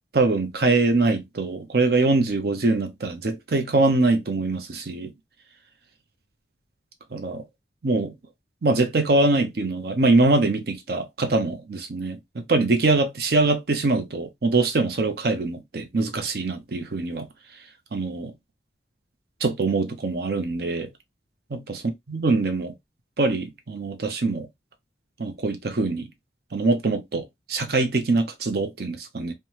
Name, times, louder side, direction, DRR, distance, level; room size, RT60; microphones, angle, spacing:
voice 1, 0.1-5.1 7.1-7.4 7.8-8.1 8.6-17.3 17.9-18.3 19.4-20.9 21.5-22.7 23.2-24.5 25.2-26.1 26.5-29.3, right 3 dB, 55° right, 0.5 m, -23 dB
3.1 x 2.1 x 2.8 m
head